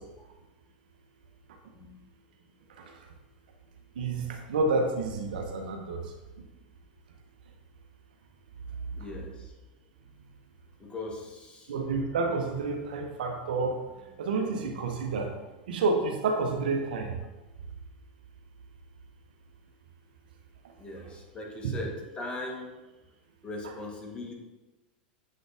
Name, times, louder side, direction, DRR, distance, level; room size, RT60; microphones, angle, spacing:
voice 1, 4.0-6.1 11.7-13.8 14.2-15.3 15.7-17.1 21.6-21.7, right 3 dB, 75° right, 4 dB, 1.0 m, -29 dB
voice 2, 8.9-9.5 10.8-11.7 14.0-14.1 20.8-22.8 23.4-24.3, left 2 dB, 20° left, 0 dB, 1.5 m, -39 dB
7.5 x 4.0 x 3.5 m, 1.1 s
hypercardioid pair, 100°, 5 cm